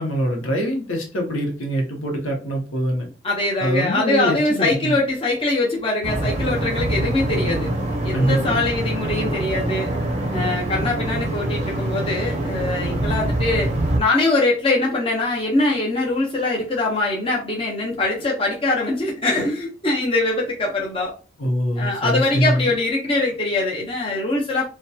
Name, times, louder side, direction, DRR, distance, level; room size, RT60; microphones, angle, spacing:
voice 1, 0.0-3.1 3.6-5.0 8.1-8.6 21.4-22.7, equal, 85° left, 1 dB, 0.8 m, -23 dB
voice 2, 3.2-7.7 8.0-9.9 10.3-13.7 14.0-21.1 21.8-24.7, left 2 dB, 25° left, -3 dB, 0.6 m, -22 dB
sound 1, 6.0-14.0, right 1 dB, 35° right, 0.5 m, -24 dB
2.8 x 2.2 x 2.3 m, 0.34 s
head